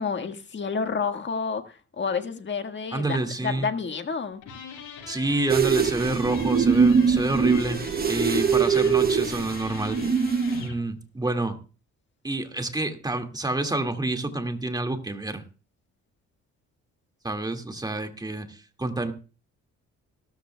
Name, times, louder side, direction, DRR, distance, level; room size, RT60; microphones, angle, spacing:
voice 1, 0.0-4.4, left 5 dB, 40° left, 1.6 m, -30 dB
voice 2, 2.9-3.7 5.1-7.8 8.1-10.0 10.6-11.6 12.2-15.4 17.2-19.1, right 2 dB, 15° right, 2.1 m, -28 dB
sound 1, 4.4-10.8, left 6 dB, 85° left, 6.3 m, -41 dB
sound 2, 5.5-10.7, right 6 dB, 30° right, 1.0 m, -22 dB
17.0 x 13.5 x 2.3 m
cardioid pair, 90°, 30 cm